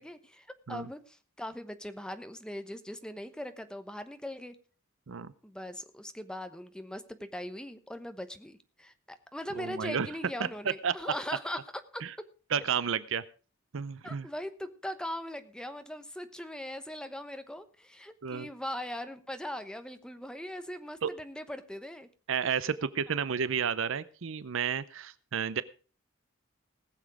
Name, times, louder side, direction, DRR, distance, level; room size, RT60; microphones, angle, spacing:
voice 1, 0.0-4.6 5.4-11.6 11.9-12.0 14.0-22.1, left 1 dB, 5° left, 9 dB, 1.0 m, -40 dB
voice 2, 9.6-10.1 10.4-11.1 12.0-12.1 12.5-13.2 13.7-14.3 18.2-18.5 21.0-21.1 22.3-25.6, right 7 dB, 70° right, 16 dB, 0.6 m, -31 dB
19.5 x 7.3 x 4.8 m, 0.37 s
head